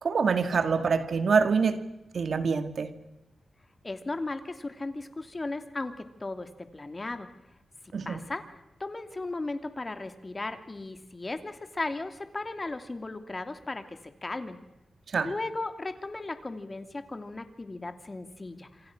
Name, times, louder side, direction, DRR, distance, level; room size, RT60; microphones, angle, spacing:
voice 1, 0.0-1.8 2.1-2.9 7.9-8.2 15.1-15.3, right 5 dB, 65° right, 2.2 m, -25 dB
voice 2, 3.8-7.3 8.0-8.4 8.8-14.6 15.2-18.9, left 2 dB, 30° left, 2.7 m, -36 dB
27.5 x 27.0 x 6.2 m
wide cardioid pair, 95°, 0 cm